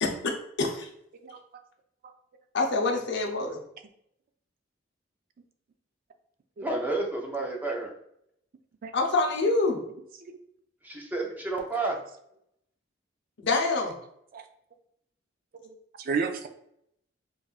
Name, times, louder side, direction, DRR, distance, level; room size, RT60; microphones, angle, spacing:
voice 1, 0.0-0.3 0.6-0.9 2.5-3.6 8.9-9.8 13.4-13.9, left 3 dB, 65° left, 2 dB, 0.7 m, -26 dB
voice 2, 6.6-7.9 10.8-12.0, right 2 dB, 10° right, -1 dB, 0.6 m, -30 dB
voice 3, 15.6-16.5, right 5 dB, 50° right, 6 dB, 0.4 m, -32 dB
5.2 x 2.5 x 2.4 m, 0.74 s
head